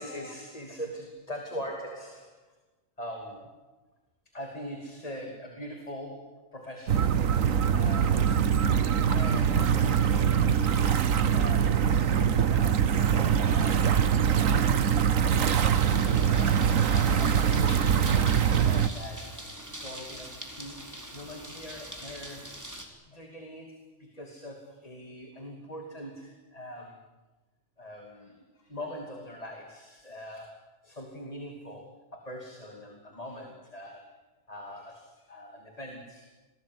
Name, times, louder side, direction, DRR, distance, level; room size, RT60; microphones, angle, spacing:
voice 1, 0.0-2.5 3.0-3.8 4.3-7.3 7.7-8.4 9.0-10.7 11.3-15.0 16.2-22.6 23.1-27.1 27.8-34.2 34.5-36.3, equal, 30° left, 2 dB, 2.9 m, -42 dB
sound 1, 6.9-18.9, right 8 dB, 85° right, 1.5 m, -23 dB
sound 2, 15.4-22.8, equal, 15° right, 3.9 m, -42 dB
29.0 x 19.5 x 9.6 m, 1.1 s
omnidirectional pair, 1.3 m